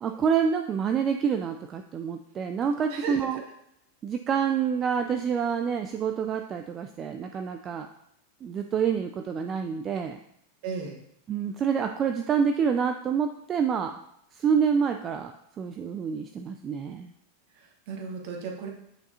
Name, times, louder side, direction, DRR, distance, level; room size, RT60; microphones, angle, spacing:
voice 1, 0.0-3.4 4.0-7.9 8.4-10.2 11.3-14.0 14.3-15.3 15.6-17.1, right 7 dB, 25° right, 5 dB, 0.4 m, -27 dB
voice 2, 2.9-3.4 10.6-11.0 17.5-18.7, right 4 dB, 50° right, 2 dB, 1.2 m, -35 dB
8.6 x 4.8 x 2.7 m, 0.75 s
figure-of-eight pair, 90°, 0 cm